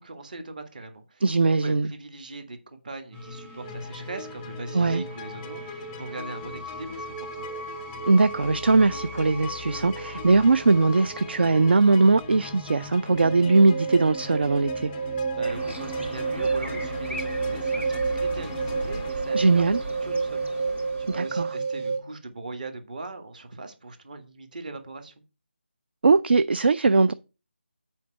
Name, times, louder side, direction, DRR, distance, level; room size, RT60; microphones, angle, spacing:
voice 1, 0.0-1.2 1.6-7.5 15.3-25.1, right 3 dB, 45° right, 1.7 m, -40 dB
voice 2, 1.2-1.9 4.7-5.0 8.0-14.9 19.3-19.8 21.1-21.5 26.0-27.1, right 3 dB, 60° right, 0.4 m, -20 dB
sound 1, 3.1-22.0, right 4 dB, 10° right, 1.5 m, -32 dB
sound 2, 3.6-19.1, left 7 dB, 10° left, 0.4 m, -43 dB
sound 3, 15.4-21.4, right 1 dB, 80° right, 3.8 m, -38 dB
8.4 x 4.5 x 6.1 m
figure-of-eight pair, 160°, 6 cm